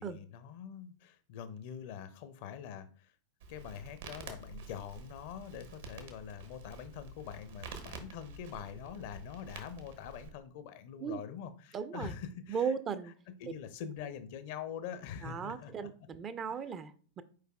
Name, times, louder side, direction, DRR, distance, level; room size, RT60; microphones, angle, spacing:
voice 1, 0.0-3.1 3.5-13.0 13.4-15.9, left 8 dB, 50° left, 12 dB, 0.5 m, -44 dB
Crackle, 3.4-10.3, right 3 dB, 60° right, 0.8 m, -49 dB
voice 2, 11.7-12.2 12.5-13.1 15.2-17.2, right 6 dB, 25° right, 13 dB, 0.4 m, -37 dB
4.7 x 4.6 x 2.2 m, 0.42 s
figure-of-eight pair, 90°, 0 cm